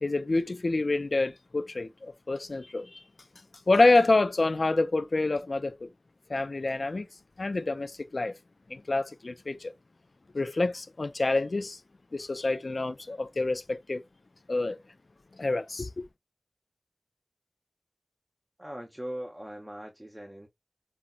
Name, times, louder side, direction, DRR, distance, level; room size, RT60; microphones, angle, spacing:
voice 1, 0.0-3.0 3.7-5.9 6.3-7.1 7.4-8.3 8.7-9.7 10.3-11.8 12.1-14.0 14.5-14.8 15.3-16.0, left 2 dB, 90° left, 0.3 m, -27 dB
voice 2, 18.6-20.5, equal, 20° right, 0.5 m, -40 dB
3.8 x 2.1 x 2.2 m
wide cardioid pair, 55°, 0 cm